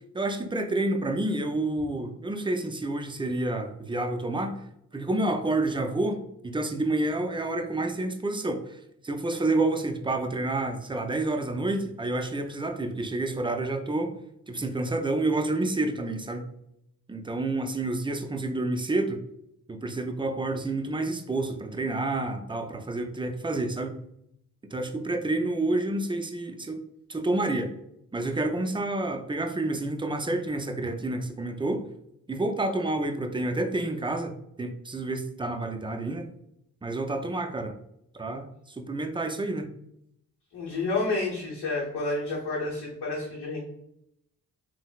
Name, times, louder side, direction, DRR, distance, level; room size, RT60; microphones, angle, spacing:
voice 1, 0.1-4.7 4.9-14.1 14.5-16.5 17.1-19.2 19.7-24.0 24.7-26.8 27.1-27.7 28.1-31.9 32.3-34.3 34.6-36.3 36.8-37.7 38.1-39.7, right 2 dB, 15° right, 5 dB, 0.4 m, -29 dB
voice 2, 40.5-43.6, left 3 dB, 90° left, -5 dB, 0.8 m, -30 dB
3.7 x 2.0 x 2.3 m, 0.76 s
cardioid pair, 50°, 38 cm